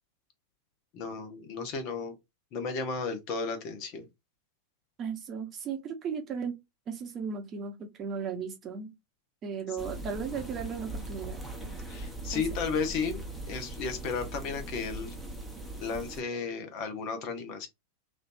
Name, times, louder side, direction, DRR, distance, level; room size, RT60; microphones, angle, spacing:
voice 1, 0.9-2.1 2.5-4.0 11.9-15.1 15.8-17.7, left 5 dB, 40° left, 1.0 m, -34 dB
voice 2, 5.0-6.5 6.9-8.9 9.4-11.4 12.3-12.4, right 6 dB, 30° right, 1.0 m, -36 dB
sound 1, 9.8-16.2, right 1 dB, ahead, 1.0 m, -40 dB
3.3 x 2.6 x 2.6 m
figure-of-eight pair, 90°, 0 cm